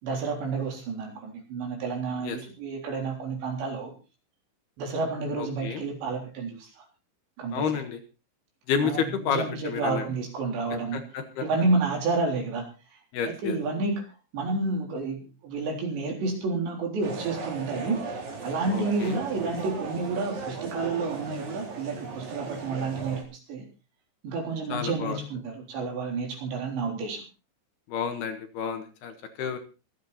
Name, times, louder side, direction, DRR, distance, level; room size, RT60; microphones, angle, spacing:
voice 1, 0.0-3.9 4.8-6.7 7.4-7.7 8.8-11.0 11.4-12.7 13.3-14.0 14.3-18.0 18.4-23.6 24.2-27.2, right 3 dB, 70° right, 2 dB, 6.0 m, -30 dB
voice 2, 5.4-5.8 7.5-8.0 8.7-10.0 10.9-11.4 13.1-13.6 18.7-19.2 24.7-25.2 27.9-29.6, left 7 dB, 65° left, 7 dB, 3.3 m, -30 dB
sound 1, 17.0-23.2, right 4 dB, 45° right, 3.5 m, -37 dB
25.0 x 8.4 x 4.2 m, 0.32 s
omnidirectional pair, 5.3 m